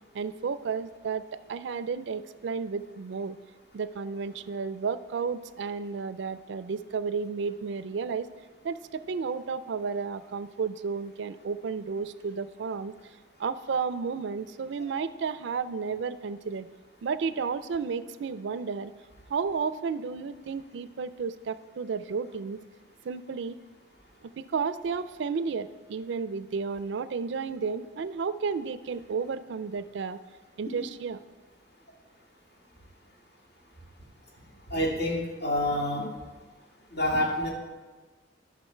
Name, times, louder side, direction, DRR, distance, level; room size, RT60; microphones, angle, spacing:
voice 1, 0.1-3.4 3.7-8.3 8.6-12.9 13.4-16.7 17.0-18.9 19.3-22.6 23.0-23.6 24.2-30.2 30.6-31.2, right 5 dB, 70° right, 14 dB, 0.4 m, -32 dB
voice 2, 34.7-36.1 36.9-37.5, left 1 dB, 60° left, -2 dB, 2.2 m, -28 dB
12.0 x 6.1 x 4.4 m, 1.3 s
head